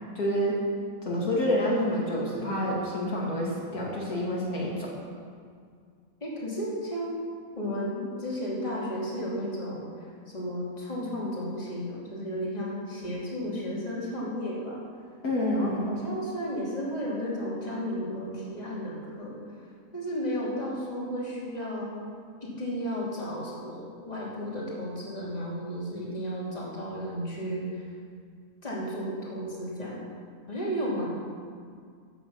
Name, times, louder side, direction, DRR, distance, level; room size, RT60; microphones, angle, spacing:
voice 1, 0.1-0.6 1.0-4.9 15.2-15.8, left 1 dB, 75° left, -4 dB, 3.0 m, -28 dB
voice 2, 6.2-7.1 7.6-14.8 15.5-19.3 19.9-21.9 22.4-27.8 28.6-30.0 30.5-31.1, equal, 25° left, -6 dB, 3.0 m, -33 dB
14.5 x 9.3 x 5.8 m, 2.1 s
omnidirectional pair, 1.6 m